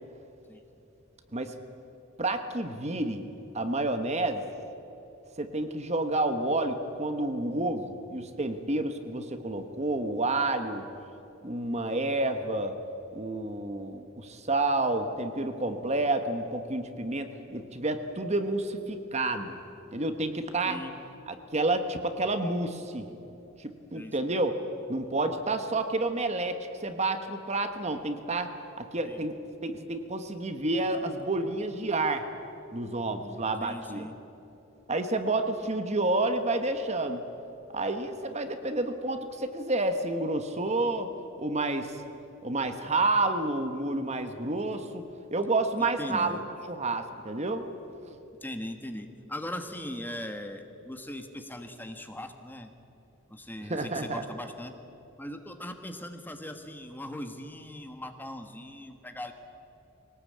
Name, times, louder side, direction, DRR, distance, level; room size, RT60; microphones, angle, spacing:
voice 1, 2.2-3.2 3.5-4.4 5.4-10.9 11.4-12.7 13.1-19.6 19.9-20.8 21.3-23.1 23.6-24.5 24.9-28.5 28.8-32.3 32.7-34.1 34.9-37.2 37.7-41.1 41.4-42.0 42.4-45.1 45.3-46.4 46.7-47.7 48.1-48.2 53.7-54.2, right 2 dB, 30° right, 8 dB, 1.2 m, -29 dB
voice 2, 20.6-20.9 23.9-24.3 29.0-29.2 33.6-34.1 45.8-46.4 48.4-52.7 53.3-54.7 55.2-59.3, left 1 dB, 10° left, 6 dB, 1.3 m, -39 dB
22.0 x 18.5 x 8.6 m, 3.0 s
head